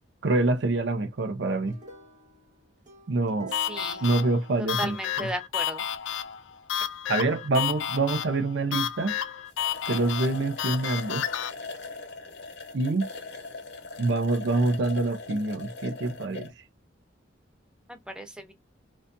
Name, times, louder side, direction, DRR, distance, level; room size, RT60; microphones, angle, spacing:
voice 1, 0.2-1.8 3.1-3.5 4.0-5.3 6.8-9.2 9.9-11.3 12.7-13.1 14.0-16.5, right 2 dB, 65° right, 0.6 m, -26 dB
sound 1, 1.7-5.1, right 4 dB, 40° right, 0.9 m, -49 dB
sound 2, 3.5-11.5, left 10 dB, 85° left, 0.3 m, -31 dB
voice 2, 3.6-4.0 4.8-5.9 17.9-18.5, right 1 dB, 5° right, 0.5 m, -35 dB
sound 3, 9.1-9.2 9.5-16.5, left 3 dB, 65° left, 0.7 m, -40 dB
2.6 x 2.3 x 2.5 m
head